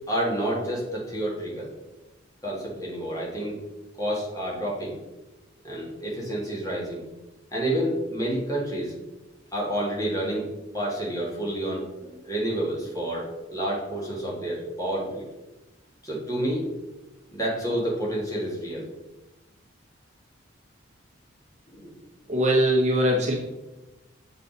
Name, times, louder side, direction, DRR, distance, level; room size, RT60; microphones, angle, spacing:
voice 1, 0.1-1.7 2.4-3.6 4.0-5.0 5.6-7.0 7.5-8.9 9.5-10.5 10.7-15.2 16.0-16.7 17.3-18.9 21.7-21.9, right 1 dB, 20° left, -4 dB, 1.7 m, -29 dB
voice 2, 22.3-23.3, equal, 35° right, -1 dB, 1.1 m, -21 dB
7.1 x 4.1 x 4.1 m, 1.0 s
head